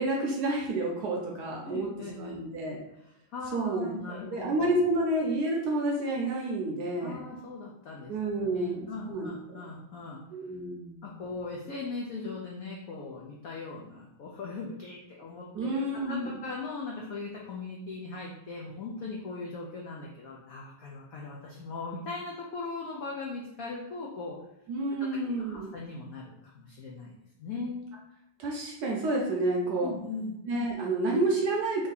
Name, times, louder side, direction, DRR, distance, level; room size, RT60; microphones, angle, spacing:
voice 1, 0.0-1.9 2.1-2.8 3.5-7.2 8.1-9.6 10.3-11.2 15.5-16.3 24.7-25.7 28.4-29.9 30.5-31.9, right 2 dB, 70° right, -1 dB, 1.0 m, -30 dB
voice 2, 1.7-2.4 3.0-4.7 7.0-8.1 8.5-10.2 11.0-24.4 25.3-27.8 29.8-30.4, left 3 dB, 80° left, -2 dB, 0.7 m, -39 dB
3.5 x 2.7 x 3.9 m, 0.81 s
omnidirectional pair, 2.2 m